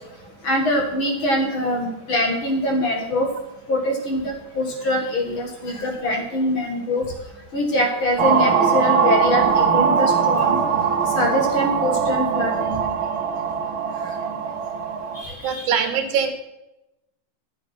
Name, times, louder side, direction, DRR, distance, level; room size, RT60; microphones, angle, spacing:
voice 1, 0.4-3.3 3.7-7.1 7.5-10.6 11.1-12.8 15.2-15.7, left 1 dB, 45° left, 1 dB, 2.1 m, -23 dB
sound 1, 8.2-15.2, right 7 dB, 55° right, 1.6 m, -21 dB
voice 2, 15.4-16.3, right 7 dB, 75° right, 6 dB, 2.6 m, -22 dB
12.0 x 7.5 x 5.8 m, 0.93 s
omnidirectional pair, 3.6 m